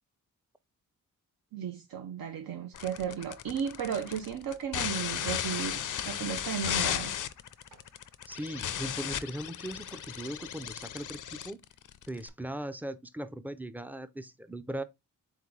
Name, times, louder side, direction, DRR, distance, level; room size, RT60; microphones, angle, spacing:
voice 1, 1.5-7.1, right 8 dB, 85° right, 0.6 m, -35 dB
sound 1, 2.7-12.3, left 10 dB, 65° left, 0.5 m, -35 dB
sound 2, 6.2-6.9 7.5-7.9 8.9-9.1 9.8-10.2 11.0-11.1 11.4-11.5 12.3-12.4, right 4 dB, 55° right, 1.0 m, -55 dB
voice 2, 8.3-11.6 12.1-14.8, right 1 dB, 5° right, 0.3 m, -39 dB
3.8 x 3.7 x 3.1 m
wide cardioid pair, 90°, 34 cm